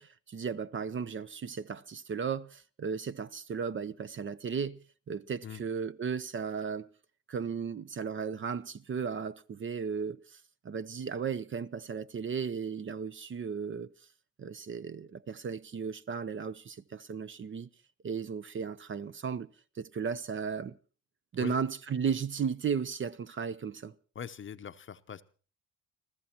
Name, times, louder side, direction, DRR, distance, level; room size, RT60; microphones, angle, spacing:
voice 1, 0.0-4.8 5.1-6.9 7.3-10.4 10.6-13.9 14.4-17.7 18.0-19.5 19.8-20.7 21.3-23.9, right 6 dB, 35° right, 0.7 m, -35 dB
voice 2, 24.1-25.2, left 8 dB, 35° left, 0.8 m, -42 dB
30.0 x 14.5 x 2.9 m
supercardioid pair, 70°, 36 cm